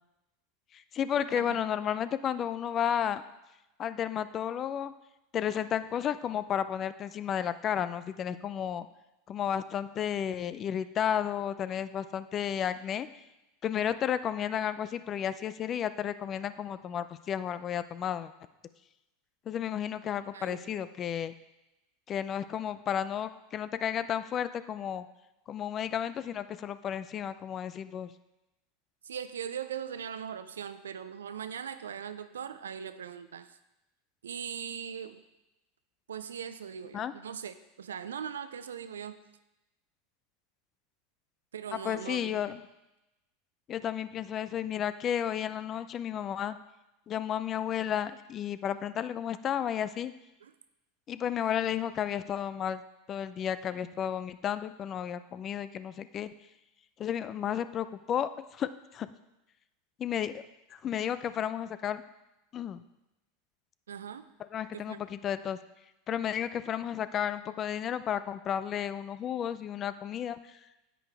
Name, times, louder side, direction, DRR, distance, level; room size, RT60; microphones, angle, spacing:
voice 1, 0.7-3.2 3.8-4.9 5.3-8.9 9.3-13.1 13.6-18.3 19.5-21.3 22.1-25.1 25.5-28.1 36.9-37.1 41.7-42.6 43.7-46.6 47.1-50.1 51.1-52.8 53.1-56.3 57.0-59.1 60.0-60.4 60.7-62.0 62.5-62.8 64.5-65.6 66.1-70.6, left 9 dB, 35° left, 14 dB, 0.5 m, -32 dB
voice 2, 29.0-33.6 34.2-35.2 36.1-39.2 41.5-42.5 50.4-50.5 63.9-64.3 64.7-65.0, right 8 dB, 80° right, 13 dB, 0.5 m, -40 dB
10.0 x 8.6 x 3.5 m, 0.95 s
hypercardioid pair, 85°, 0 cm